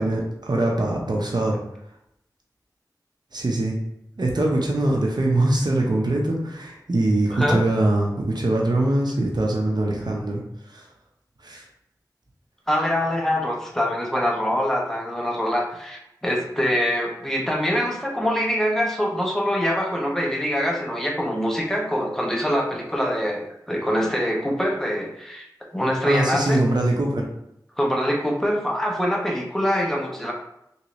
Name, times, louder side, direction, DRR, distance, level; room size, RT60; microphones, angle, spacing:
voice 1, 0.0-1.6 3.3-3.8 4.2-10.4 10.7-10.8 11.4-11.6 26.1-27.3, right 1 dB, 70° right, 0 dB, 0.7 m, -22 dB
voice 2, 7.3-7.6 12.7-25.5 25.7-26.6 27.8-30.3, equal, 5° left, -1 dB, 0.9 m, -24 dB
3.6 x 2.8 x 3.1 m, 0.80 s
wide cardioid pair, 45°, 8 cm